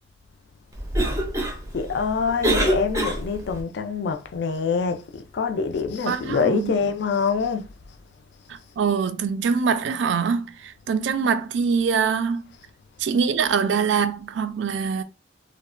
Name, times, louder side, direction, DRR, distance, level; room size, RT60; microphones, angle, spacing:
Cough, 0.7-3.6, right 1 dB, 15° right, 0.4 m, -26 dB
voice 1, 1.7-8.0 12.5-12.6, left 5 dB, 65° left, 0.3 m, -25 dB
voice 2, 6.1-6.7 8.5-12.5 13.0-15.0, right 6 dB, 80° right, 0.3 m, -24 dB
2.8 x 2.1 x 2.4 m
head